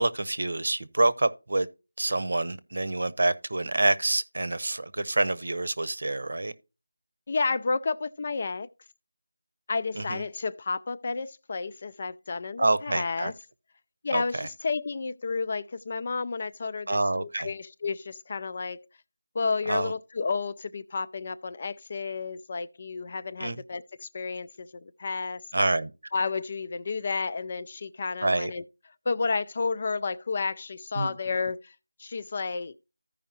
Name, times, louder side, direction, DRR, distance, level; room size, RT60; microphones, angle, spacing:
voice 1, 0.0-1.7 2.0-6.5 9.9-10.2 12.6-13.3 14.1-14.5 16.9-17.5 19.7-19.9 23.4-23.6 25.5-25.9 28.2-28.5 31.0-31.1, right 2 dB, 60° right, 0.8 m, -27 dB
voice 2, 7.3-8.7 9.7-13.3 14.0-18.9 19.3-25.4 26.1-28.6 29.1-31.7 32.0-32.7, left 4 dB, 30° left, 0.4 m, -31 dB
15.0 x 5.3 x 2.8 m
figure-of-eight pair, 175°, 0 cm